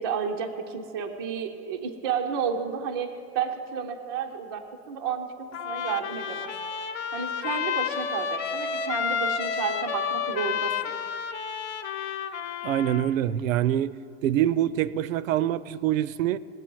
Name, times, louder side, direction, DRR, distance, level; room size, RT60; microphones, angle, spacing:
voice 1, 0.0-3.1 3.3-6.5 7.1-10.9, right 7 dB, 20° right, 3 dB, 0.4 m, -31 dB
Trumpet, 5.5-13.1, left 7 dB, 60° left, 1.0 m, -30 dB
voice 2, 12.6-14.0 14.2-16.4, right 11 dB, 75° right, 17 dB, 0.6 m, -25 dB
19.5 x 8.0 x 4.5 m, 2.4 s
supercardioid pair, 170°, 40 cm